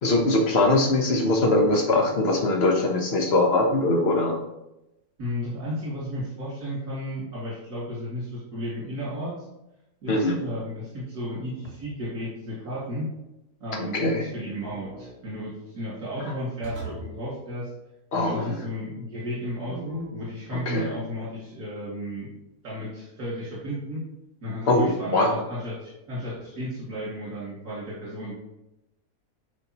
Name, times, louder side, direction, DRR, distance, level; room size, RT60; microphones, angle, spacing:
voice 1, 0.0-4.4 10.1-10.4 13.8-14.3 18.1-18.6 20.5-21.0 24.7-25.4, left 2 dB, 45° left, 2 dB, 1.3 m, -22 dB
voice 2, 5.2-9.3 10.0-13.1 13.6-17.7 18.1-22.3 22.6-24.0 24.4-28.4, equal, 75° right, -8 dB, 2.9 m, -33 dB
sound 1, 11.6-12.1 14.6-15.1 16.6-17.2 19.6-20.4, right 2 dB, 50° right, 1.9 m, -39 dB
9.6 x 5.1 x 3.0 m, 0.90 s
omnidirectional pair, 1.7 m